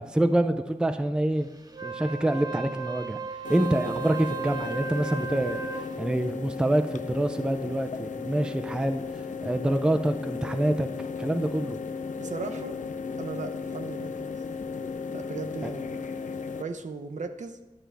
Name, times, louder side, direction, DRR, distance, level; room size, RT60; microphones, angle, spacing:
voice 1, 0.0-1.5 1.8-3.2 3.5-9.0 9.4-10.9 11.2-11.8, right 1 dB, 5° right, 8 dB, 0.4 m, -26 dB
Wind instrument woodwind instrument, 1.7-5.9, right 6 dB, 30° right, 0.8 m, -35 dB
sound 1, 3.4-16.6, left 5 dB, 70° left, 0.4 m, -35 dB
voice 2, 12.2-12.8 13.2-14.3 15.1-16.0 16.6-17.6, right 4 dB, 65° right, 6 dB, 0.7 m, -37 dB
11.5 x 6.0 x 3.4 m, 1.1 s
wide cardioid pair, 110°, 13 cm